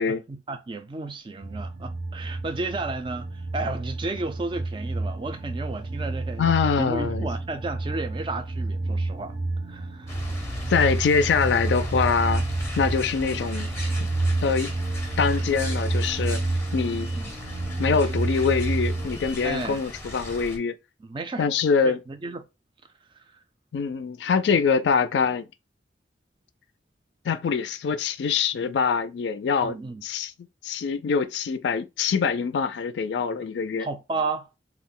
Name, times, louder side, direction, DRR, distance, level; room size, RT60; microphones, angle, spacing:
voice 1, 0.0-9.3 9.6-10.2 17.1-17.3 19.4-19.8 21.0-21.5 21.8-22.4 23.2-23.4 29.6-30.0 33.8-34.6, right 3 dB, 25° right, 0.3 m, -33 dB
sound 1, 1.4-19.2, right 2 dB, 65° right, 0.6 m, -29 dB
voice 2, 6.4-7.3 10.7-12.4 12.8-13.7 14.0-14.1 14.4-14.7 15.2-16.4 16.7-17.1 17.8-20.7 21.4-22.0 23.7-25.5 27.2-30.3 30.6-33.9, left 5 dB, 75° left, 0.4 m, -24 dB
sound 2, 10.1-20.6, left 1 dB, 15° left, 0.6 m, -37 dB
2.3 x 2.1 x 3.6 m
head